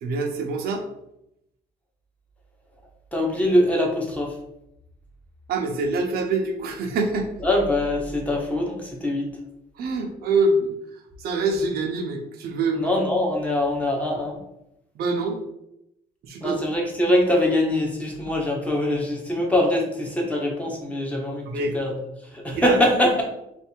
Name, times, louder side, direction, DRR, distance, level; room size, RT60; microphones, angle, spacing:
voice 1, 0.0-0.8 5.5-7.3 9.8-10.7 11.2-12.9 15.0-15.4 16.2-16.6 21.5-21.8 22.5-22.8, right 3 dB, 70° right, 2 dB, 0.8 m, -25 dB
voice 2, 3.1-4.4 7.4-9.3 12.7-14.4 16.4-21.9 22.3-23.2, left 1 dB, 10° left, -1 dB, 1.1 m, -23 dB
3.4 x 2.7 x 4.5 m, 0.82 s
cardioid pair, 110°, 17 cm